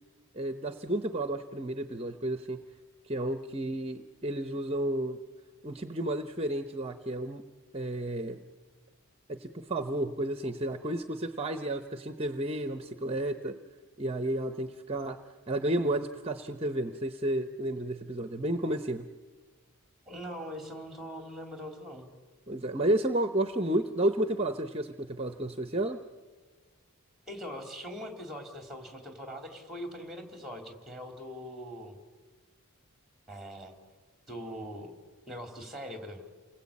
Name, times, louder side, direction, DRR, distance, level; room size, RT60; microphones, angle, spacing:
voice 1, 0.3-2.6 3.0-5.2 5.6-7.4 7.7-8.4 9.3-13.6 14.0-15.2 15.5-19.1 22.5-26.0, right 1 dB, 25° right, 8 dB, 0.8 m, -31 dB
voice 2, 20.1-22.1 27.3-32.0 33.3-33.7 34.3-34.9 35.3-36.2, equal, ahead, 3 dB, 3.1 m, -42 dB
28.5 x 20.5 x 8.6 m, 1.4 s
head